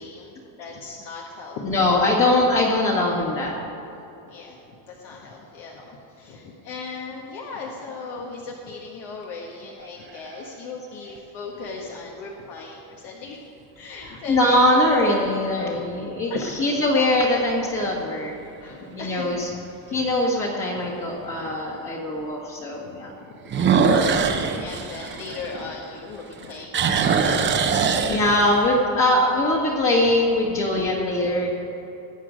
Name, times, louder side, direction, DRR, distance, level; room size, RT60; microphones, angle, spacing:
voice 1, 0.0-2.0 4.3-13.5 13.7-14.6 15.5-15.8 16.3-16.6 18.6-20.0 20.8-20.9 21.4-21.6 22.7-28.1 31.4-31.5, left 4 dB, 65° left, -1 dB, 1.7 m, -37 dB
voice 2, 1.6-3.6 14.0-18.3 18.8-19.5 19.9-23.1 28.1-31.5, left 1 dB, 30° left, -4 dB, 1.8 m, -22 dB
sound 1, 9.8-10.5 11.2-11.3 16.5-16.9 17.4-17.5 18.1-18.2 18.4-18.5 20.0-20.1 23.5-26.0 26.3-28.7, right 5 dB, 25° right, 0.8 m, -22 dB
19.0 x 8.0 x 5.2 m, 3.0 s
cardioid pair, 155°, 46 cm